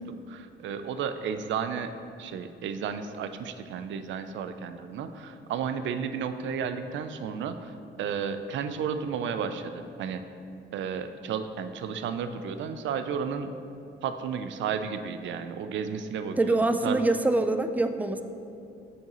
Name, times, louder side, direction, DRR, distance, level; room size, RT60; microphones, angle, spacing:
voice 1, 0.3-1.9 2.2-10.2 10.7-13.5 14.0-16.6 16.8-17.0, right 7 dB, 70° right, 9 dB, 0.5 m, -33 dB
voice 2, 16.4-18.2, right 2 dB, 10° right, 8 dB, 0.3 m, -24 dB
6.6 x 6.4 x 3.0 m, 2.7 s
cardioid pair, 90°, 20 cm